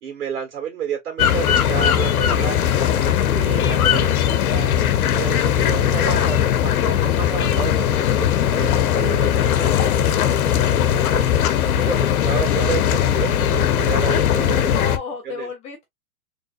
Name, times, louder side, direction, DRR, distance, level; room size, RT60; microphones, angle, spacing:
voice 1, 0.0-3.1 3.3-4.7 5.1-11.2 11.6-14.7 15.2-15.5, right 9 dB, 85° right, 1.6 m, -31 dB
sound 1, 1.2-15.0, left 10 dB, 75° left, 0.8 m, -19 dB
voice 2, 14.4-15.8, left 5 dB, 15° left, 0.5 m, -32 dB
3.8 x 3.2 x 2.4 m
hypercardioid pair, 150°, 44 cm